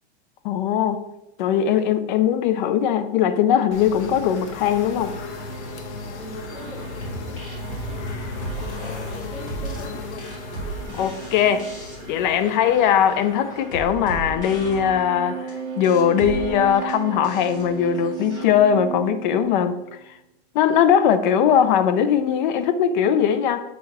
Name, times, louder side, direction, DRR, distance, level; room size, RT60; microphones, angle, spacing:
voice 1, 0.4-1.1 1.4-5.1 10.9-11.7 12.1-15.4 15.8-19.8 20.5-23.6, left 8 dB, 45° left, 0.7 m, -20 dB
sound 1, 3.7-14.3, left 4 dB, 90° left, 1.0 m, -36 dB
sound 2, 3.8-20.1, right 9 dB, 40° right, 0.9 m, -37 dB
voice 2, 6.2-8.0 8.6-10.3, left 1 dB, 5° right, 2.1 m, -41 dB
sound 3, 6.5-18.4, right 2 dB, 25° left, 1.9 m, -36 dB
7.4 x 4.0 x 4.3 m
supercardioid pair, 155°, 33 cm